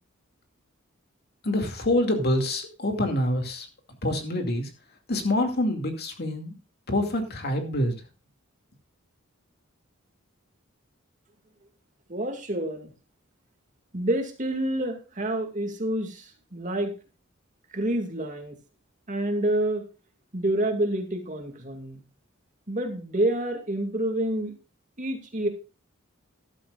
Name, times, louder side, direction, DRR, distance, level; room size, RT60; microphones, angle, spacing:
voice 1, 1.4-3.7 4.0-4.7 5.1-6.5 6.9-8.0, left 1 dB, 50° left, 4 dB, 2.4 m, -26 dB
voice 2, 12.1-12.9 13.9-16.9 17.7-18.6 19.1-19.8 20.3-22.0 22.7-24.5 25.0-25.5, right 1 dB, 40° right, 4 dB, 2.2 m, -28 dB
13.0 x 12.0 x 2.5 m, 0.31 s
head